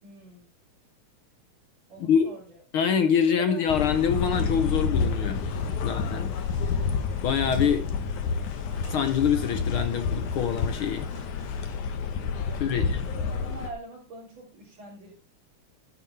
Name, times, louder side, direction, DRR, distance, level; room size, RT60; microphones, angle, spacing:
voice 1, 0.0-0.5 1.9-2.4 3.4-3.6 12.5-15.1, right 3 dB, 60° right, 5.0 m, -44 dB
voice 2, 2.0-2.3 2.7-5.5 5.8-6.4 7.2-7.9 8.9-11.1 12.6-13.1, left 7 dB, 70° left, 1.3 m, -25 dB
sound 1, 3.7-13.7, left 5 dB, 85° left, 2.7 m, -29 dB
Engine starting, 4.8-11.8, left 1 dB, 45° left, 4.8 m, -47 dB
13.0 x 10.0 x 3.3 m
omnidirectional pair, 3.3 m